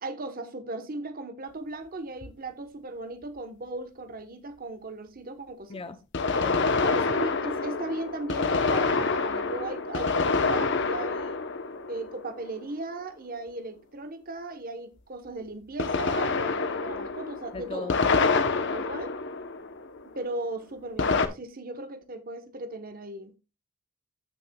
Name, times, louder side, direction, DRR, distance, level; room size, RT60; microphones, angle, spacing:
voice 1, 0.0-5.9 6.8-11.4 11.9-18.4 18.7-19.1 20.1-23.3, right 2 dB, 45° right, 1.1 m, -37 dB
sound 1, 2.2-2.3 6.1-12.6 15.8-20.0 21.0-21.3, left 4 dB, 60° left, 0.9 m, -27 dB
voice 2, 5.7-6.0 6.4-6.8 17.5-18.1, left 3 dB, 25° left, 0.6 m, -37 dB
14.5 x 6.2 x 2.3 m
head